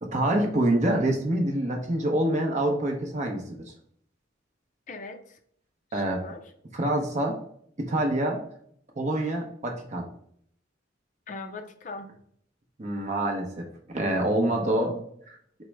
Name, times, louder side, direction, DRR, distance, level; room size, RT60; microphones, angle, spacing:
voice 1, 0.0-3.6 5.9-6.2 6.7-7.4 7.8-8.4 9.0-10.1 12.8-15.0, right 1 dB, 35° right, 2 dB, 0.7 m, -26 dB
voice 2, 4.9-5.4 5.9-6.4 11.3-12.1 14.6-15.0, left 3 dB, 40° left, 8 dB, 0.4 m, -39 dB
4.5 x 2.0 x 4.5 m, 0.65 s
head